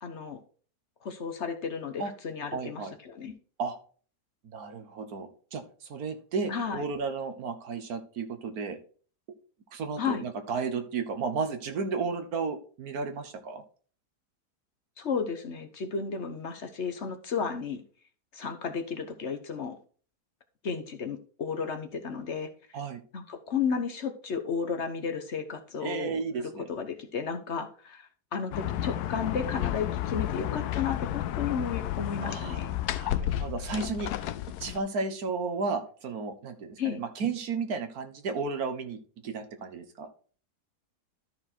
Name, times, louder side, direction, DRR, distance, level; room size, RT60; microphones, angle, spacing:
voice 1, 0.0-0.4 1.0-3.3 6.5-6.8 10.0-10.2 15.0-17.8 18.3-19.8 20.6-22.5 23.1-32.7 36.8-37.0, left 6 dB, 50° left, 7 dB, 1.1 m, -33 dB
voice 2, 2.5-2.9 3.6-3.8 4.4-5.6 5.9-8.8 9.7-13.6 22.7-23.0 25.8-26.7 32.2-32.6 33.0-34.3 34.6-39.0 39.2-40.1, right 4 dB, 65° right, 7 dB, 1.7 m, -33 dB
sound 1, 28.5-34.8, left 12 dB, 75° left, 1.1 m, -32 dB
13.0 x 4.6 x 4.4 m, 0.42 s
omnidirectional pair, 1.7 m